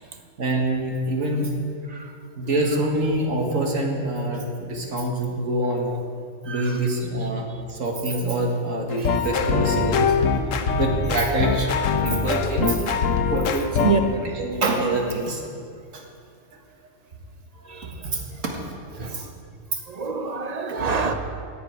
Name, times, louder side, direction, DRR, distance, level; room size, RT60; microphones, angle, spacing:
voice 1, 0.4-1.5 2.4-5.9 6.5-10.2 10.8-12.8 13.3-15.4 15.9-16.0 18.0-18.6 19.1-19.3 19.7-19.8 20.7-20.8, right 2 dB, 75° right, 1 dB, 2.1 m, -25 dB
voice 2, 6.5-6.8 10.6-10.7 13.8-14.0 19.0-19.2 19.9-21.1, right 5 dB, 35° right, 6 dB, 0.8 m, -25 dB
sound 1, 8.9-14.0, left 5 dB, 80° left, 1.1 m, -23 dB
10.5 x 7.0 x 9.4 m, 2.3 s
omnidirectional pair, 1.4 m